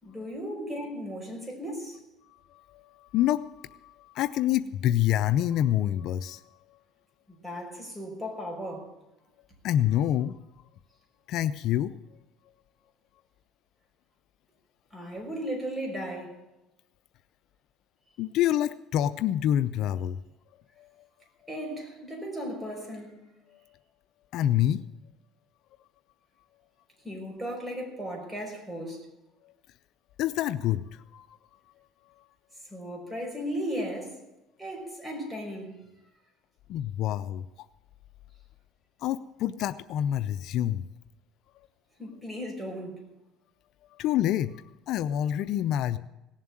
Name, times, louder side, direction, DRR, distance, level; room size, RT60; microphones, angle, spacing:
voice 1, 0.0-2.0 7.3-8.9 14.9-16.4 21.5-23.2 27.0-29.1 32.7-34.2 34.6-35.8 42.0-43.0, equal, 10° right, 5.5 m, -36 dB
voice 2, 2.5-6.8 9.6-10.4 11.3-11.9 18.2-20.2 20.8-20.9 24.3-24.8 29.4-29.5 30.2-31.4 36.7-37.5 39.0-40.9 44.0-46.0, left 12 dB, 60° left, 0.5 m, -27 dB
17.5 x 7.5 x 8.9 m
cardioid pair, 115°, 0 cm